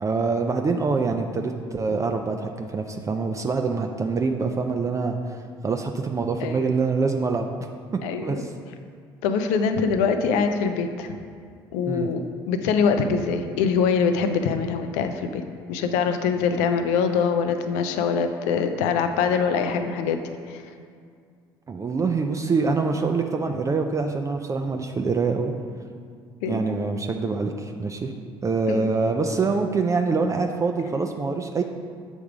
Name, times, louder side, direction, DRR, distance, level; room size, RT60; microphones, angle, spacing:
voice 1, 0.0-7.5 8.2-8.5 11.9-12.1 21.7-25.5 26.5-28.1 28.4-31.6, right 4 dB, 25° right, 4 dB, 0.4 m, -25 dB
voice 2, 8.0-8.4 9.2-11.1 11.7-15.4 15.7-20.6 26.4-26.6 28.7-28.9, left 6 dB, 70° left, 7 dB, 0.5 m, -24 dB
7.3 x 3.5 x 4.9 m, 2.2 s
hypercardioid pair, 55°, 12 cm